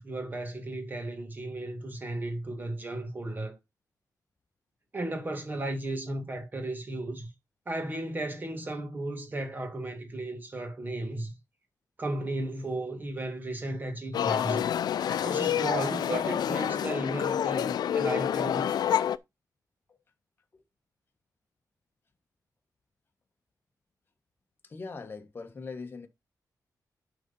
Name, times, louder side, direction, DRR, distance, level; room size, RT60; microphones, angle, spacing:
voice 1, 0.0-3.6 4.9-7.3 7.7-11.3 12.0-14.7 15.2-18.8, right 2 dB, 25° right, 2.3 m, -35 dB
sound 1, 14.1-19.2, left 9 dB, 80° left, 0.5 m, -28 dB
voice 2, 24.6-26.1, left 4 dB, 30° left, 1.2 m, -41 dB
10.5 x 3.9 x 5.5 m
wide cardioid pair, 160°, 7 cm